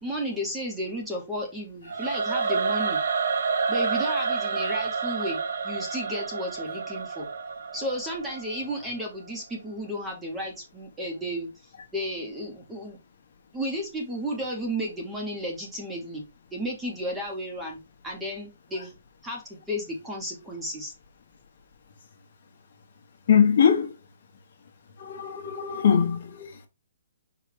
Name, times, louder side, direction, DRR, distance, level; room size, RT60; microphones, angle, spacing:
voice 1, 0.0-3.0 3.7-5.4 5.6-7.3 7.7-11.5 11.9-13.0 13.5-16.2 16.5-18.9 19.2-19.4 19.7-20.9, equal, 5° right, 0.7 m, -33 dB
Singing / Musical instrument, 1.9-9.0, right 5 dB, 70° right, 0.6 m, -29 dB
voice 2, 23.3-23.9 25.0-26.7, left 7 dB, 45° left, 1.1 m, -22 dB
4.9 x 2.2 x 4.9 m
hypercardioid pair, 175°, 0 cm